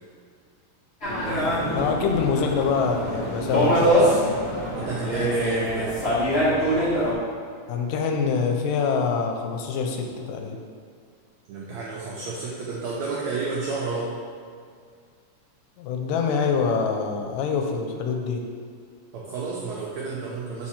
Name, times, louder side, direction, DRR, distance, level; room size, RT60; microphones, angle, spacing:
sound 1, 1.0-7.1, equal, 60° left, 0.6 m, -23 dB
voice 1, 1.7-4.2 7.7-10.6 15.8-18.4, left 5 dB, 80° left, 3 dB, 2.2 m, -25 dB
voice 2, 4.7-5.9 11.5-14.1 19.1-20.7, right 4 dB, 80° right, -4 dB, 1.6 m, -31 dB
4.6 x 4.5 x 5.6 m, 2.2 s
omnidirectional pair, 4.0 m